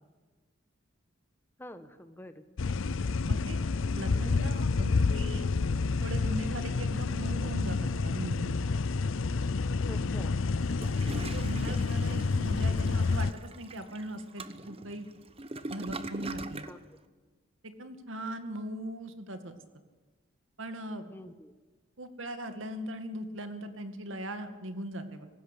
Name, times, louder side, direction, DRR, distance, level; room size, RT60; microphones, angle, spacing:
voice 1, 1.6-2.9 9.9-10.4 16.7-16.8 21.1-21.5, left 1 dB, 10° left, 9 dB, 1.2 m, -47 dB
sound 1, 2.6-13.3, left 4 dB, 80° left, 0.6 m, -29 dB
voice 2, 3.3-3.6 3.9-5.5 6.0-8.7 11.1-13.3 13.6-15.1 15.7-16.7 17.6-19.6 20.6-21.1 22.0-25.3, right 1 dB, 80° right, 8 dB, 2.2 m, -39 dB
Toilet flush, 10.6-16.8, right 2 dB, 30° right, 1.0 m, -42 dB
19.0 x 16.5 x 8.4 m, 1.3 s
head